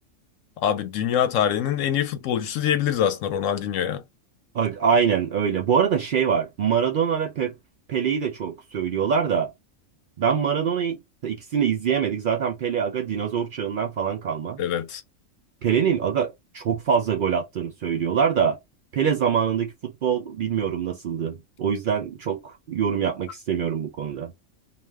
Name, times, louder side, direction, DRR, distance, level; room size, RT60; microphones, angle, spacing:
voice 1, 0.6-4.0 14.6-15.0, left 9 dB, 85° left, 1.0 m, -24 dB
voice 2, 4.5-7.5 7.9-9.5 10.2-14.6 15.6-18.6 18.9-24.3, right 7 dB, 65° right, 0.5 m, -24 dB
2.4 x 2.1 x 3.3 m
omnidirectional pair, 1.3 m